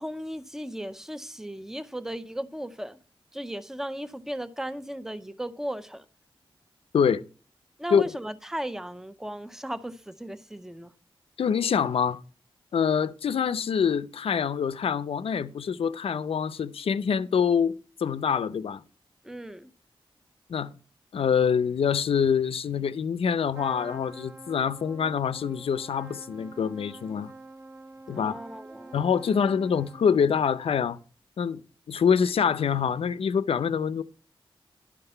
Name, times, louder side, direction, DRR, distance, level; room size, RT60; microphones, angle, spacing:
voice 1, 0.0-3.0 3.3-6.0 7.8-10.9 19.2-19.7 28.1-29.0, equal, 5° right, 0.6 m, -36 dB
voice 2, 6.9-7.2 7.9-8.0 11.4-12.2 12.7-18.8 20.5-20.7 21.1-27.3 28.1-28.3 28.9-31.0 31.4-31.6 31.9-34.0, left 7 dB, 90° left, 0.6 m, -25 dB
Trumpet, 23.5-30.4, right 2 dB, 35° right, 0.9 m, -46 dB
11.5 x 5.9 x 5.5 m
wide cardioid pair, 175°, 10 cm